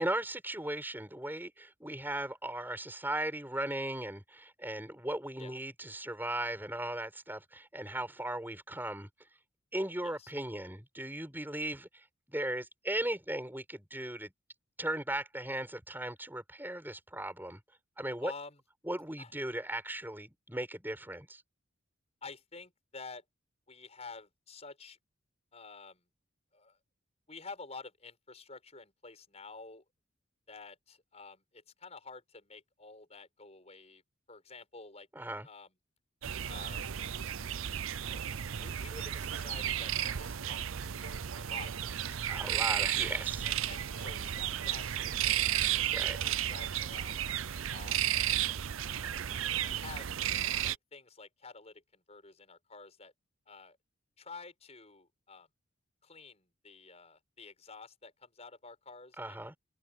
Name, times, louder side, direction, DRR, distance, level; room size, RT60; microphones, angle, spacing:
voice 1, 0.0-9.1 9.7-11.9 12.3-14.3 14.8-17.6 18.0-18.3 18.9-21.4 35.1-35.5 42.3-43.4 45.8-46.2 59.2-59.6, right 1 dB, 10° right, 7.7 m, -37 dB
voice 2, 18.2-18.6 19.2-19.3 22.2-23.2 23.7-25.0 25.5-26.0 26.5-26.8 27.3-29.8 30.5-34.0 34.3-35.1 35.4-35.7 36.5-36.9 38.0-38.2 38.6-42.9 43.4-45.6 45.9-47.2 47.7-48.1 48.8-50.1 50.6-53.1 53.5-53.8 54.2-55.5 56.0-59.4, left 4 dB, 30° left, 7.0 m, -50 dB
sound 1, 36.2-50.8, right 10 dB, 75° right, 0.6 m, -33 dB
head